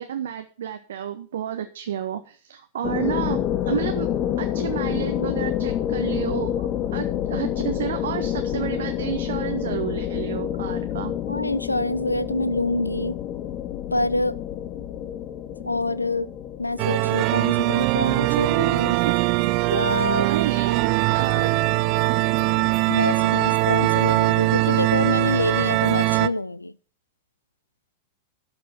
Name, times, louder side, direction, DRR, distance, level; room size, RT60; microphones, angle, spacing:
voice 1, 0.0-4.1 4.4-11.1 19.1-19.5 20.2-21.5, right 9 dB, 60° right, 7 dB, 0.9 m, -31 dB
sound 1, 2.8-17.9, left 11 dB, 35° left, 0.8 m, -28 dB
voice 2, 11.3-13.2 13.9-14.3 15.6-16.3 16.6-19.0 19.7-20.3 22.9-26.7, left 2 dB, 85° left, 18 dB, 0.5 m, -26 dB
sound 2, 16.8-26.3, right 20 dB, 45° right, 0.5 m, -21 dB
12.5 x 6.1 x 5.7 m, 0.40 s
figure-of-eight pair, 90°, 0 cm